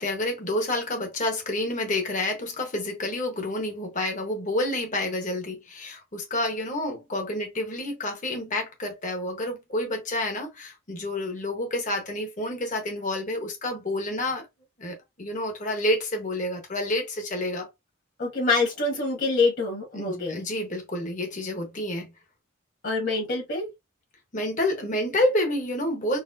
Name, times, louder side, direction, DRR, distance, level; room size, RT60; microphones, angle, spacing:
voice 1, 0.0-14.5 14.8-17.7 19.9-22.1 24.3-26.2, left 1 dB, 35° left, 1.0 m, -29 dB
voice 2, 18.2-20.4 22.8-23.7, left 3 dB, 50° left, 1.5 m, -25 dB
4.1 x 2.0 x 2.6 m
head